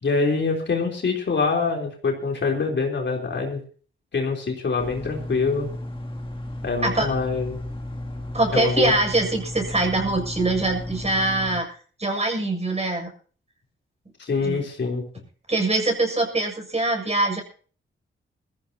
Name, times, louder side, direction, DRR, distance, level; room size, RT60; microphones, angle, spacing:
voice 1, 0.0-3.6 4.1-5.7 6.6-7.6 8.5-8.9 14.2-15.0, left 4 dB, 60° left, 1 dB, 3.7 m, -24 dB
sound 1, 4.8-11.6, left 1 dB, 25° left, 2.7 m, -34 dB
voice 2, 8.3-11.6 12.0-13.1 14.4-14.6 15.5-17.4, right 2 dB, 30° right, 3 dB, 6.9 m, -23 dB
21.5 x 15.0 x 2.9 m, 0.42 s
cardioid pair, 65°, 21 cm